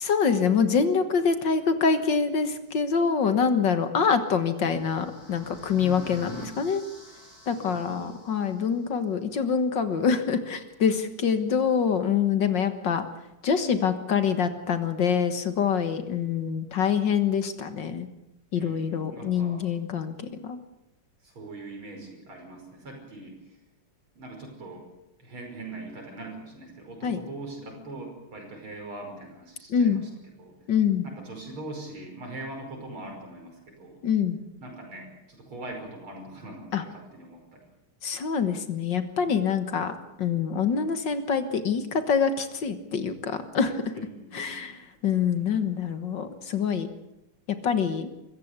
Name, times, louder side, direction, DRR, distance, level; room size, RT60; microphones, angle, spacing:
voice 1, 0.0-6.8 7.5-13.1 13.4-18.1 18.5-20.6 27.0-27.2 29.7-30.0 30.7-31.1 34.0-34.4 36.7-36.8 38.0-39.9 40.2-43.8 44.3-44.8 45.0-46.9 47.5-48.1, left 6 dB, 60° left, 9 dB, 2.0 m, -25 dB
sound 1, 3.9-8.9, equal, 10° left, 7.3 m, -49 dB
voice 2, 5.7-6.6 7.6-8.2 18.5-19.7 21.2-23.4 24.1-24.9 25.2-30.5 31.0-34.0 34.6-37.6 43.9-44.7, right 2 dB, 70° right, 2 dB, 6.3 m, -42 dB
24.5 x 15.0 x 8.2 m, 0.92 s
omnidirectional pair, 2.4 m